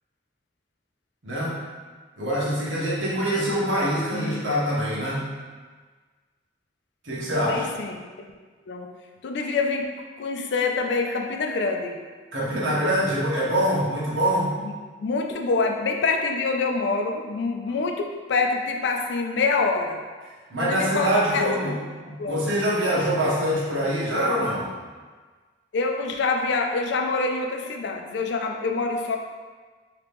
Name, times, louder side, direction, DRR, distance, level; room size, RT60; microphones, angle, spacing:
voice 1, 1.2-1.6 2.2-5.3 7.0-7.7 12.3-14.5 20.5-21.7 22.0-24.6, equal, 80° right, -6 dB, 1.1 m, -24 dB
voice 2, 4.1-4.4 7.5-8.0 8.7-8.9 9.2-9.8 10.2-12.0 14.6-14.7 15.0-20.0 20.6-21.7 22.2-22.5 25.7-29.2, left 4 dB, 60° left, 3 dB, 0.3 m, -26 dB
3.0 x 2.8 x 3.4 m, 1.4 s
head